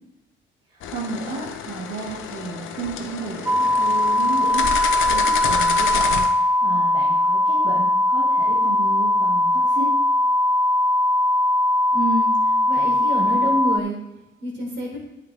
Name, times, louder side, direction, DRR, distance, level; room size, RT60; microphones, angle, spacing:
sound 1, 0.8-6.3, left 7 dB, 80° left, 0.9 m, -29 dB
voice 1, 0.9-6.2 6.6-9.9, right 4 dB, 80° right, -5 dB, 1.9 m, -33 dB
sound 2, 3.5-13.8, left 1 dB, 10° right, 0.3 m, -20 dB
voice 2, 11.9-12.3 12.7-14.0 14.4-15.0, equal, 65° right, -1 dB, 3.7 m, -27 dB
9.5 x 8.8 x 3.4 m, 1.0 s
cardioid pair, 90°, 20 cm